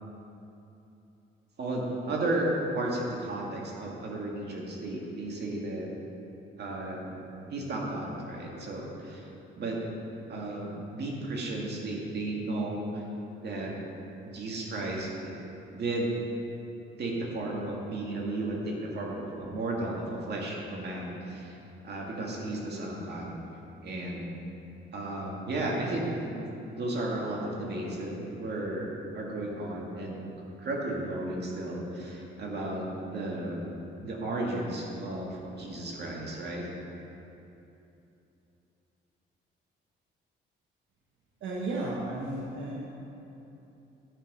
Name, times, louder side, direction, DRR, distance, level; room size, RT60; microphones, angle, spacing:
voice 1, 1.6-5.9 6.6-9.3 9.6-9.8 10.3-13.0 13.4-13.7 14.2-15.3 15.7-16.2 17.0-21.5 21.8-23.3 23.8-24.3 24.9-26.4 26.7-30.2 30.6-33.7 34.0-36.6, right 2 dB, 55° right, -2 dB, 2.0 m, -34 dB
voice 2, 41.4-42.8, right 2 dB, 75° right, -4 dB, 1.3 m, -33 dB
11.0 x 5.7 x 5.4 m, 2.9 s
cardioid pair, 90°, 20 cm